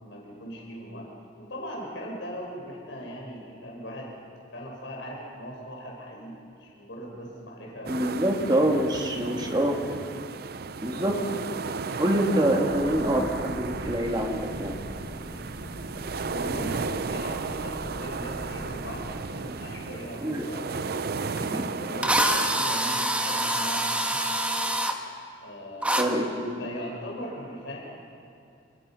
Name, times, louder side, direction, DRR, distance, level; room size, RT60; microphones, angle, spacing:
voice 1, 0.0-4.1 4.5-8.5 9.1-9.6 16.3-24.2 25.4-26.2 26.6-27.8, equal, 85° left, -2 dB, 5.5 m, -40 dB
voice 2, 7.9-9.7 10.8-11.2 11.9-14.8 20.2-20.5 21.5-21.7 26.0-26.7, right 1 dB, 25° right, 1 dB, 2.7 m, -25 dB
sound 1, 7.9-22.8, right 4 dB, 55° right, 0.6 m, -34 dB
sound 2, 12.7-19.2, equal, 25° left, 1.5 m, -42 dB
Drill, 21.4-21.5 22.0-25.0 25.8-26.1, right 1 dB, 5° right, 1.4 m, -25 dB
27.5 x 20.5 x 5.9 m, 2.7 s
head